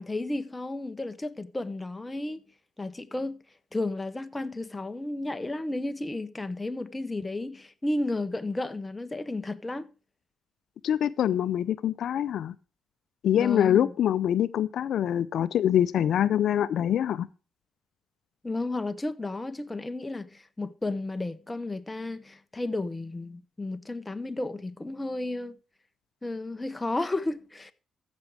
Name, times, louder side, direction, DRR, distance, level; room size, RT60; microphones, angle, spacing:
voice 1, 0.0-2.4 2.8-3.4 3.7-9.9 13.3-13.9 18.4-25.5 26.2-27.7, left 2 dB, 15° left, 0.8 m, -33 dB
voice 2, 10.8-12.5 13.2-17.3, left 10 dB, 70° left, 0.4 m, -24 dB
14.5 x 6.2 x 4.7 m
cardioid pair, 90°, 0 cm